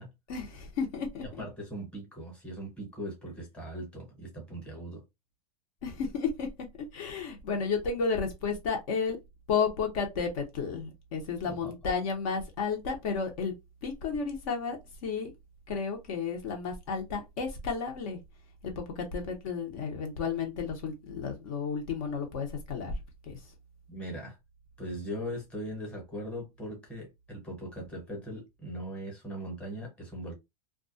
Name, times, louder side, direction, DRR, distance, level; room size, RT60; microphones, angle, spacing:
voice 1, 0.3-1.2 5.8-6.5 6.9-9.2 9.5-13.5 13.8-15.3 15.7-18.2 18.6-22.9 23.3-23.4, left 5 dB, 55° left, 0.8 m, -32 dB
voice 2, 1.2-5.0 11.4-11.7 23.9-24.4 24.8-30.3, equal, 5° left, 1.0 m, -40 dB
2.3 x 2.2 x 2.5 m
supercardioid pair, 145°, 20 cm